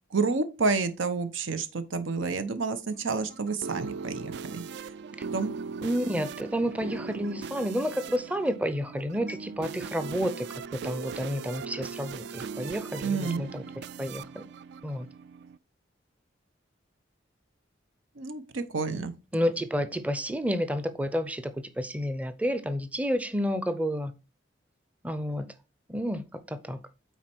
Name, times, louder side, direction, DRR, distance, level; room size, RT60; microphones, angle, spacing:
voice 1, 0.1-4.6 5.3-5.5 13.0-13.5 18.2-19.1, right 4 dB, 85° right, 0.8 m, -29 dB
sound 1, 2.9-15.6, right 5 dB, 60° right, 0.3 m, -39 dB
voice 2, 5.8-10.5 10.8-13.6 14.0-14.4 14.8-15.1 19.3-24.1 25.0-25.5 25.9-26.2 26.5-26.8, equal, 5° right, 0.6 m, -30 dB
9.2 x 4.3 x 4.4 m
head